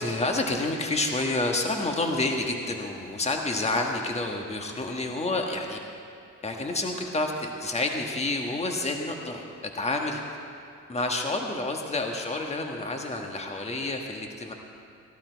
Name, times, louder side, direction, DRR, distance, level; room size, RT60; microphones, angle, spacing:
voice 1, 0.0-5.8 6.4-10.2 10.9-14.5, left 2 dB, 20° left, 2 dB, 1.4 m, -29 dB
16.0 x 12.0 x 4.6 m, 2.4 s
cardioid pair, 90°, 30 cm